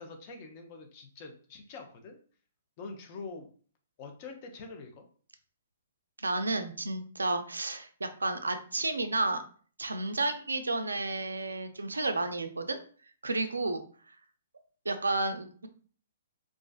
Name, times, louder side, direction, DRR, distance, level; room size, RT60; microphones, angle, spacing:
voice 1, 0.0-2.2 2.8-3.5 4.0-5.1, left 4 dB, 40° left, 4 dB, 0.5 m, -45 dB
voice 2, 6.2-9.4 9.8-12.8 13.2-13.8 14.9-15.7, right 2 dB, 85° right, 8 dB, 0.3 m, -31 dB
2.4 x 2.3 x 2.3 m, 0.43 s
figure-of-eight pair, 120°, 0 cm